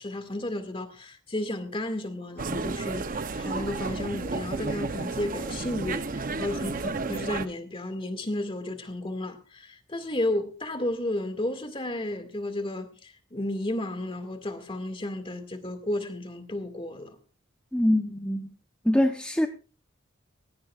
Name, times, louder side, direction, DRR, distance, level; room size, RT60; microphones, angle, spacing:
voice 1, 0.0-17.2, left 1 dB, 25° left, 2.0 m, -33 dB
sound 1, 2.4-7.5, right 3 dB, 45° right, 0.7 m, -32 dB
voice 2, 17.7-18.5 18.8-19.5, left 1 dB, 5° left, 0.8 m, -24 dB
17.5 x 16.5 x 2.4 m
head